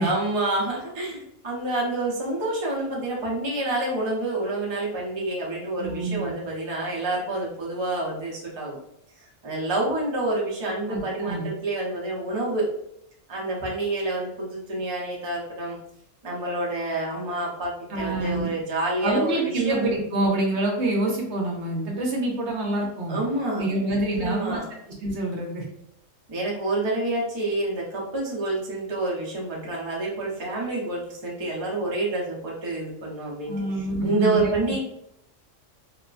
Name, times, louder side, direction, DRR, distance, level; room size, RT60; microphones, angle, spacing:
voice 1, 0.0-8.8 9.4-12.7 13.3-15.8 16.2-19.9 23.1-23.9 24.2-24.7 26.3-34.8, right 2 dB, 30° right, -4 dB, 0.6 m, -28 dB
voice 2, 5.8-6.3 10.9-11.5 17.9-18.5 19.0-23.2 23.6-24.6 25.0-25.6 33.5-34.5, right 2 dB, 65° right, 0 dB, 0.9 m, -26 dB
3.0 x 2.0 x 2.4 m, 0.76 s
omnidirectional pair, 1.3 m